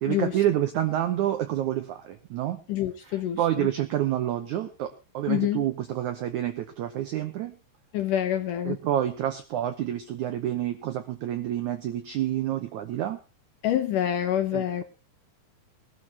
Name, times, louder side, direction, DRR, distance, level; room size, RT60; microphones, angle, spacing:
voice 1, 0.0-2.6 3.1-7.5 8.6-13.2 14.5-14.8, right 12 dB, 80° right, 8 dB, 1.7 m, -28 dB
voice 2, 2.7-3.7 5.3-5.6 7.9-8.8 13.6-14.8, left 11 dB, 75° left, 8 dB, 2.0 m, -27 dB
21.0 x 12.5 x 2.9 m, 0.30 s
omnidirectional pair, 4.6 m